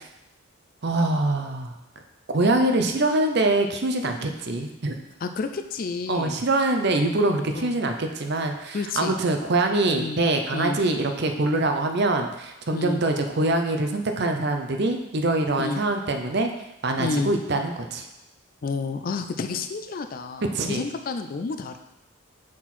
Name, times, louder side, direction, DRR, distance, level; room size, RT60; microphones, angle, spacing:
voice 1, 0.8-1.7 2.3-5.0 6.1-16.5 16.8-18.1 20.5-20.8, right 2 dB, 50° right, 5 dB, 0.6 m, -24 dB
voice 2, 5.2-6.4 7.5-7.7 8.7-9.2 10.0-10.2 10.5-10.8 12.7-13.0 15.6-15.8 17.0-17.3 18.6-21.8, left 4 dB, 40° left, 7 dB, 0.3 m, -30 dB
6.0 x 4.4 x 4.2 m, 0.91 s
head